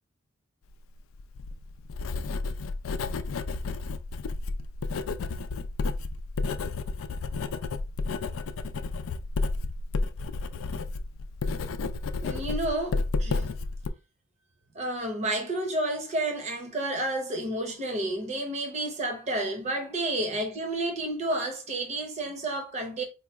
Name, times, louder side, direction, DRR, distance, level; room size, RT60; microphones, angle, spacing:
Writing, 1.1-13.9, left 3 dB, 80° left, 0.4 m, -31 dB
voice 1, 12.2-13.5 14.7-23.0, right 1 dB, 35° right, 0.7 m, -30 dB
4.4 x 2.3 x 2.9 m
head